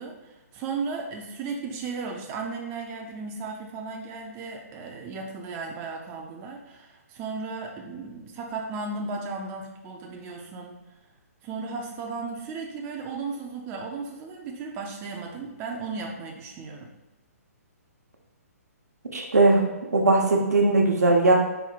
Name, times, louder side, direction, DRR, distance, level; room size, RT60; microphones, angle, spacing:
voice 1, 0.0-10.8 11.4-16.9, right 4 dB, 25° right, 0 dB, 0.5 m, -35 dB
voice 2, 19.1-19.6 19.9-21.4, right 2 dB, 80° right, 1 dB, 0.9 m, -19 dB
4.3 x 2.1 x 4.0 m, 1.0 s
hypercardioid pair, 135°, 9 cm